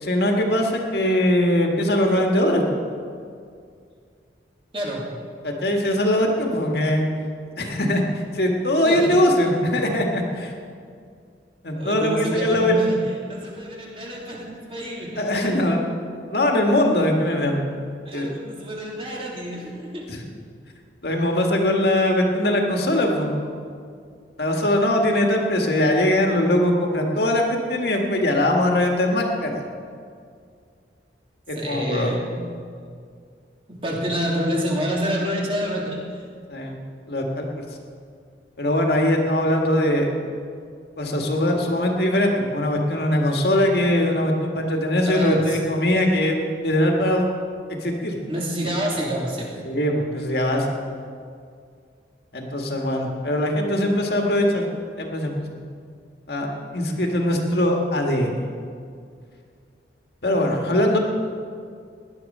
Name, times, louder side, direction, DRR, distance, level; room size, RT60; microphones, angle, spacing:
voice 1, 0.0-2.6 5.4-7.1 7.6-8.0 8.3-10.5 11.6-13.0 15.2-15.8 16.3-17.6 18.1-18.3 20.1-20.2 21.0-23.3 24.4-29.7 31.5-32.2 36.5-36.8 37.1-37.5 38.6-40.1 41.0-46.4 46.6-47.3 47.8-48.2 49.6-50.7 52.3-54.6 55.0-55.6 56.3-58.4 60.2-61.0, left 1 dB, 60° left, 1 dB, 1.8 m, -21 dB
voice 2, 4.7-5.1 8.8-9.3 11.7-15.5 18.0-20.1 31.5-32.3 33.7-36.2 45.1-45.6 48.3-49.6 56.8-57.2, equal, 30° right, -3 dB, 3.0 m, -28 dB
18.0 x 11.5 x 5.5 m, 2.2 s
head